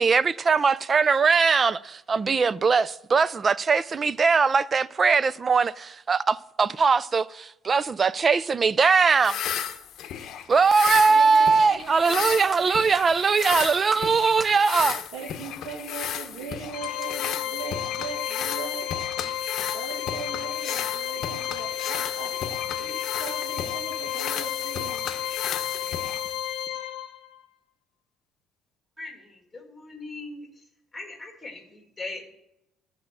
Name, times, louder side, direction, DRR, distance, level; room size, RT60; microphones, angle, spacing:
voice 1, 0.0-9.4 10.5-15.0, right 5 dB, 25° right, 0.3 m, -21 dB
sound 1, 9.1-26.7, left 9 dB, 55° left, 0.8 m, -34 dB
voice 2, 11.1-13.1 15.1-19.1 19.7-25.0, right 5 dB, 85° right, 1.9 m, -40 dB
Organ, 16.7-27.4, left 11 dB, 85° left, 0.8 m, -32 dB
voice 3, 29.0-30.5 30.9-32.3, left 3 dB, 10° left, 2.1 m, -40 dB
13.0 x 5.0 x 7.3 m
cardioid pair, 145°, 0 cm